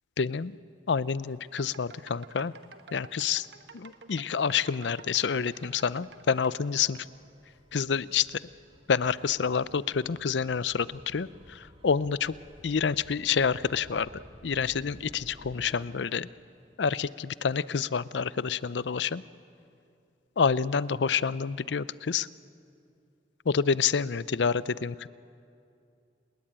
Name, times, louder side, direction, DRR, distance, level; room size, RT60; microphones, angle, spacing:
voice 1, 0.2-0.6 0.9-2.5 2.9-3.5 3.7-7.1 7.7-8.4 8.9-12.4 12.6-16.3 16.8-19.2 20.4-22.3 23.5-25.1, left 6 dB, 80° left, 18 dB, 0.5 m, -28 dB
Gull seagull / Waves surf / Siren, 1.1-15.8, equal, 30° right, 1.9 m, -56 dB
sound 1, 1.5-6.5, right 4 dB, 70° right, 1.2 m, -51 dB
29.5 x 20.0 x 8.8 m, 2.5 s
head